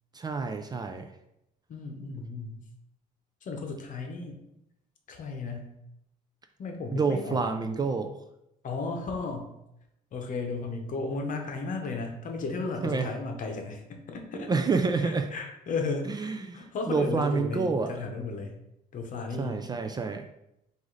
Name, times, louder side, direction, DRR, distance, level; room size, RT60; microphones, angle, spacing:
voice 1, 0.1-1.1 6.9-8.2 12.8-13.1 14.3-15.3 16.1-18.0 19.4-20.2, right 4 dB, 25° right, 6 dB, 0.3 m, -28 dB
voice 2, 1.7-2.6 3.4-4.4 5.1-5.7 6.6-7.4 8.6-9.5 10.1-14.5 15.0-18.6 18.9-19.6, left 3 dB, 50° left, 3 dB, 0.9 m, -34 dB
4.9 x 2.6 x 3.8 m, 0.83 s
cardioid pair, 110°, 17 cm